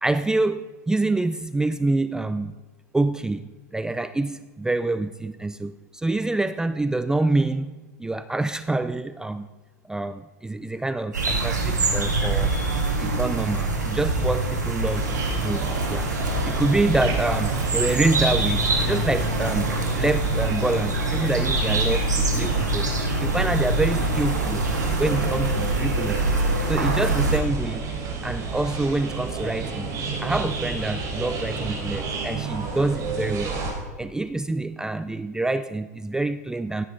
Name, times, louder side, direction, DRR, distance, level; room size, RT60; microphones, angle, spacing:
voice 1, 0.0-2.5 2.9-7.7 8.0-9.5 9.9-12.5 13.0-15.1 15.4-16.1 16.5-22.9 23.2-24.6 25.0-26.2 26.7-27.9 28.2-29.9 30.2-33.5 34.0-36.8, right 2 dB, 5° right, 12 dB, 0.4 m, -26 dB
sound 1, 11.1-27.4, right 2 dB, 85° right, 2.1 m, -25 dB
sound 2, 14.9-33.7, right 3 dB, 40° right, 3.9 m, -31 dB
15.5 x 8.2 x 3.8 m, 1.3 s
hypercardioid pair, 95°, 9 cm